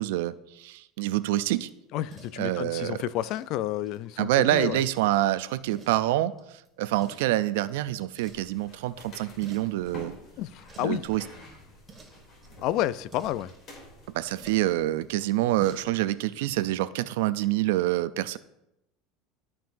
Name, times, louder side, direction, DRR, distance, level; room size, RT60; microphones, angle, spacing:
voice 1, 0.0-1.7 2.4-3.0 4.2-10.1 10.8-11.2 14.1-18.4, right 15 dB, 80° right, 15 dB, 0.3 m, -26 dB
sound 1, 1.4-16.3, right 3 dB, 20° right, 1.7 m, -55 dB
voice 2, 1.9-4.8 10.4-11.0 12.6-13.5, left 13 dB, 55° left, 17 dB, 0.3 m, -30 dB
sound 2, 8.2-16.0, left 1 dB, 35° left, 2.8 m, -49 dB
13.0 x 5.5 x 2.6 m, 0.86 s
supercardioid pair, 135°, 0 cm